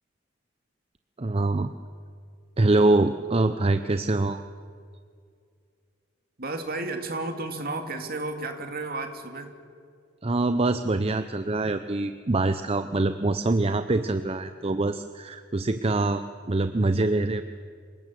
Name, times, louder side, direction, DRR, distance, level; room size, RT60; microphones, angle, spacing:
voice 1, 1.2-1.7 2.6-4.4 10.2-17.4, right 2 dB, 30° right, 10 dB, 0.7 m, -24 dB
voice 2, 6.4-9.5, right 2 dB, 50° right, 5 dB, 2.5 m, -32 dB
27.0 x 18.5 x 7.7 m, 2.2 s
head